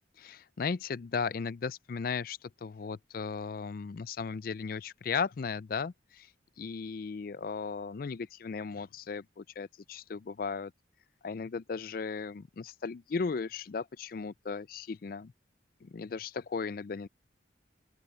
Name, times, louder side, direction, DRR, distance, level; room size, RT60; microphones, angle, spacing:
voice 1, 0.2-6.3 6.6-10.7 11.2-15.3 15.8-17.1, left 5 dB, 50° left, 0.4 m, -36 dB
open air
head